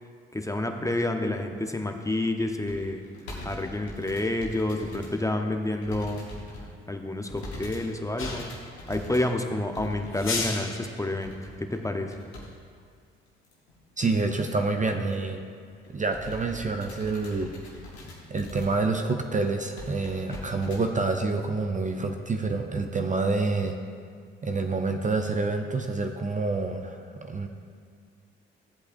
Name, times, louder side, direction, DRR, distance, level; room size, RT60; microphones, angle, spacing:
voice 1, 0.3-3.0 3.4-6.2 6.9-8.5 8.9-11.3 11.6-12.1 20.3-20.4, left 1 dB, 10° left, 5 dB, 0.8 m, -29 dB
sound 1, 2.7-5.1 5.5-6.7 7.3-12.5 12.8-12.9 13.4-13.8 14.2-14.3 14.5-14.7 15.1-15.3 15.7-19.0 19.3-19.4 19.7-20.8 21.4-21.5, left 1 dB, 85° left, 1.4 m, -42 dB
sound 2, 8.2-8.7 10.1-10.9, left 4 dB, 40° left, 1.6 m, -33 dB
voice 2, 14.0-15.4 15.9-17.5 18.3-23.7 24.4-27.5, right 3 dB, 25° right, 4 dB, 0.7 m, -27 dB
14.0 x 8.0 x 2.6 m, 2.1 s
figure-of-eight pair, 45°, 31 cm